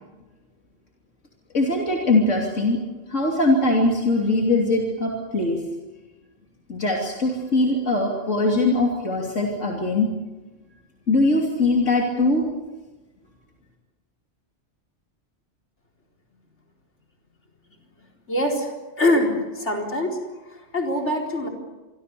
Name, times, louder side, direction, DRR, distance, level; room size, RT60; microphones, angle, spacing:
voice 1, 1.5-2.8 3.1-5.6 6.7-10.1 11.1-12.5, left 2 dB, 85° left, -1 dB, 3.4 m, -21 dB
voice 2, 18.3-18.7 19.0-20.2 20.5-21.5, left 1 dB, 65° left, 1 dB, 4.7 m, -23 dB
27.5 x 23.0 x 6.9 m, 1.2 s
omnidirectional pair, 1.3 m